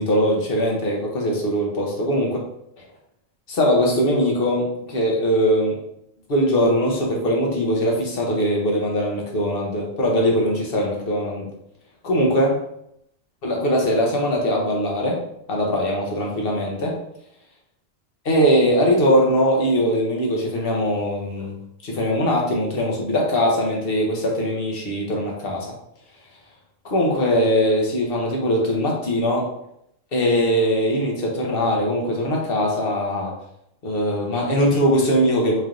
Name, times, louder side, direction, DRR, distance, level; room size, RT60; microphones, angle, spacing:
voice 1, 0.0-2.4 3.5-5.8 6.3-11.5 12.0-12.6 13.4-17.0 18.2-21.6 21.8-25.7 26.8-29.5 30.1-33.3 33.8-35.6, equal, 50° left, -1 dB, 1.0 m, -21 dB
4.3 x 3.3 x 2.5 m, 0.76 s
omnidirectional pair, 1.3 m